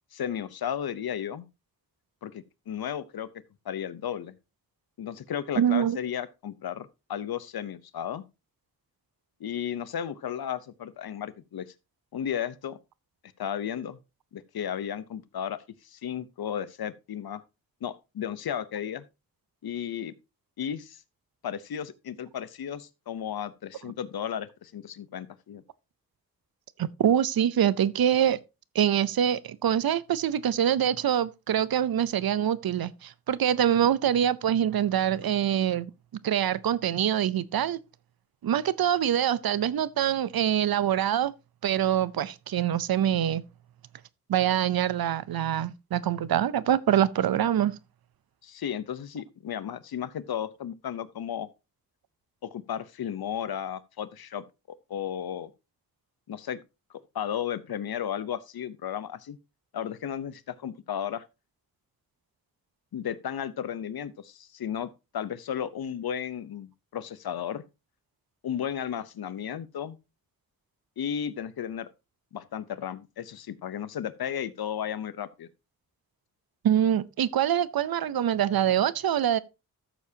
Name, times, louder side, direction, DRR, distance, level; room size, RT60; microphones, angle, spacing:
voice 1, 0.1-1.5 2.2-3.3 3.6-4.3 5.0-8.2 9.4-11.7 12.1-12.8 13.4-14.0 14.3-17.4 17.8-19.0 19.6-20.1 20.6-21.0 21.4-25.6 33.8-33.9 48.4-51.5 52.4-54.4 54.9-55.5 56.3-56.6 57.1-59.4 59.7-61.2 62.9-67.7 68.4-70.0 71.0-71.9 72.3-75.5, left 9 dB, 90° left, 0.8 m, -34 dB
voice 2, 5.6-6.0 26.8-28.4 28.7-35.9 36.2-37.8 38.4-41.3 41.6-43.4 44.3-47.7 76.6-79.4, right 10 dB, 80° right, 0.6 m, -25 dB
13.0 x 7.2 x 2.8 m
wide cardioid pair, 75°, 36 cm